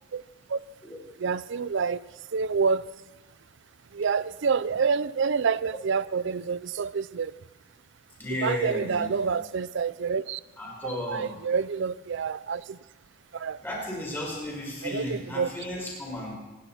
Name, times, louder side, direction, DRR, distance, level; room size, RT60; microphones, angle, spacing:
voice 1, 1.2-2.0 2.3-2.8 3.9-7.3 8.4-10.4 10.8-12.8 13.3-13.6 14.8-15.5, right 5 dB, 55° right, 17 dB, 0.4 m, -28 dB
voice 2, 8.2-9.1 10.6-11.3 13.6-16.4, left 1 dB, 10° left, -3 dB, 5.2 m, -34 dB
26.0 x 11.5 x 4.2 m, 1.2 s
head